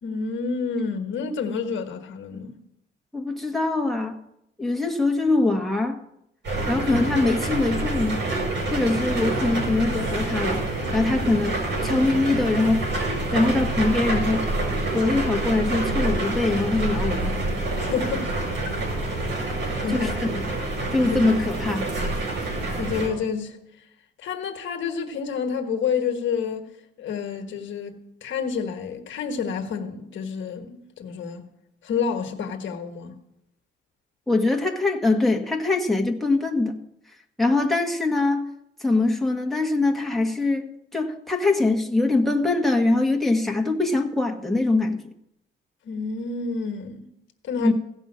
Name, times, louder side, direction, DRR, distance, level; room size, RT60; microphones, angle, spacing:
voice 1, 0.0-2.6 17.7-18.3 19.7-20.2 21.1-21.3 22.4-23.6 24.2-26.7 27.0-31.4 31.8-33.2 45.8-47.1 47.4-47.7, left 6 dB, 70° left, 1.4 m, -29 dB
voice 2, 3.1-4.2 4.6-6.0 6.7-8.3 8.7-12.8 13.3-14.5 14.9-17.4 19.9-20.4 20.9-21.9 34.3-36.7 37.4-38.5 38.8-45.1 47.6-47.7, left 2 dB, ahead, 1.6 m, -23 dB
sound 1, 6.4-23.1, right 2 dB, 65° right, 5.2 m, -27 dB
16.0 x 5.5 x 7.4 m
cardioid pair, 90°, 20 cm